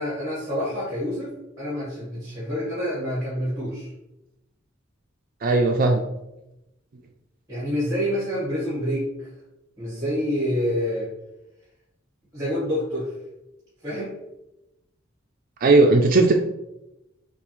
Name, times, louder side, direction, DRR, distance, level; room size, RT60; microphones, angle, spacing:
voice 1, 0.0-3.9 7.5-9.3 9.8-11.1 12.3-13.1 13.8-14.1, equal, 15° right, -7 dB, 1.4 m, -27 dB
voice 2, 5.4-6.0 15.6-16.3, right 3 dB, 45° right, 4 dB, 0.4 m, -17 dB
6.8 x 2.4 x 3.0 m, 0.92 s
head